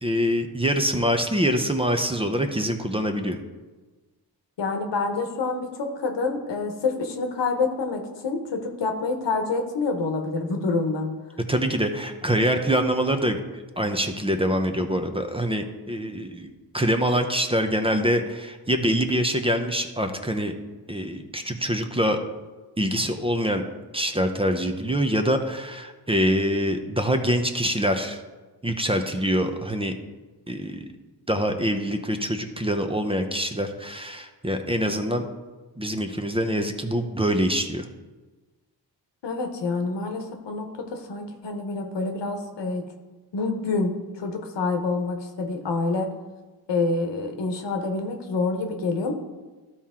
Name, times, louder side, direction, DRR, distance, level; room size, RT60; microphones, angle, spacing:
voice 1, 0.0-3.4 11.5-20.6 20.9-22.2 22.8-23.6 23.9-28.2 28.6-29.9 30.5-30.8 31.3-35.2 35.8-37.9, equal, 15° right, 6 dB, 0.7 m, -25 dB
voice 2, 4.6-11.1 39.2-42.8 43.3-46.1 46.7-49.1, left 3 dB, 90° left, 4 dB, 1.1 m, -27 dB
12.5 x 4.4 x 3.7 m, 1.3 s
cardioid pair, 75°, 41 cm